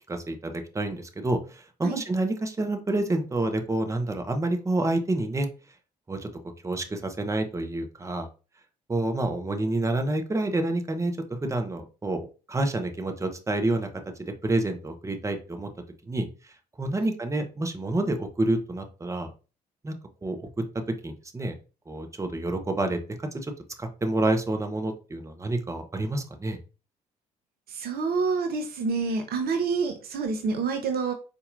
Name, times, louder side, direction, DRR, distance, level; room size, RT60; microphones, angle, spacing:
voice 1, 0.1-5.5 6.1-6.3 6.6-8.3 8.9-11.1 11.4-13.9 14.2-15.7 16.1-16.3 16.8-19.3 19.8-19.9 20.2-20.5 21.0-21.5 21.9-23.0 23.3-23.5 23.8-26.6, right 2 dB, 15° right, 6 dB, 0.7 m, -28 dB
voice 2, 27.7-31.1, right 4 dB, 50° right, 5 dB, 0.6 m, -28 dB
4.1 x 2.6 x 2.5 m, 0.34 s
figure-of-eight pair, 45°, 21 cm